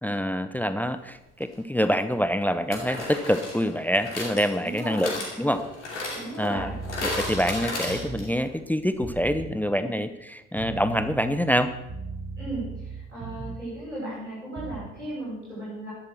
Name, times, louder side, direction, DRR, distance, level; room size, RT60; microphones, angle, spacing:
voice 1, 0.0-5.6 6.4-6.7 7.0-11.7, equal, 5° left, 12 dB, 0.7 m, -26 dB
sound 1, 1.4-1.5 2.7-8.5 8.7-8.8 9.0-9.1, left 2 dB, 80° left, 2.8 m, -34 dB
voice 2, 4.6-5.1 6.1-6.8 9.7-9.9 12.4-15.9, right 1 dB, 90° right, -8 dB, 6.0 m, -36 dB
sound 2, 6.6-8.4 9.2-9.6 10.6-13.7 14.6-15.0, right 4 dB, 30° right, 2.0 m, -38 dB
12.0 x 10.5 x 6.3 m, 0.92 s
figure-of-eight pair, 50°, 35 cm